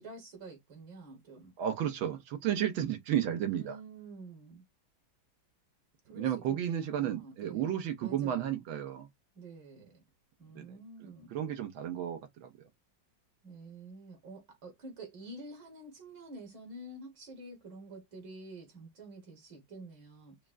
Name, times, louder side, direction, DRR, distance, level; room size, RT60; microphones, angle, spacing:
voice 1, 0.0-1.5 3.5-4.6 6.1-7.7 8.0-8.6 9.4-10.0 10.4-11.3 13.4-20.4, right 2 dB, 65° right, 2.0 m, -48 dB
voice 2, 1.6-3.8 6.1-9.1 10.5-10.7 11.0-12.5, right 10 dB, 85° right, 1.7 m, -33 dB
5.9 x 2.1 x 2.4 m
omnidirectional pair, 2.2 m